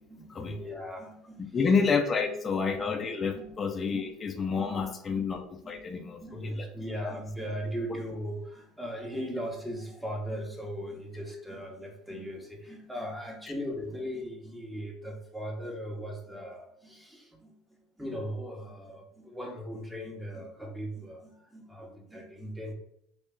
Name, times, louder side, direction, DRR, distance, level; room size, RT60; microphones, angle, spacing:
voice 1, 0.0-1.7 2.2-2.9 3.3-4.1 4.5-22.7, equal, 5° right, 1 dB, 1.0 m, -39 dB
voice 2, 1.4-6.7, left 5 dB, 30° left, 4 dB, 0.5 m, -29 dB
3.3 x 2.8 x 3.5 m, 0.75 s
supercardioid pair, 90°, 0 cm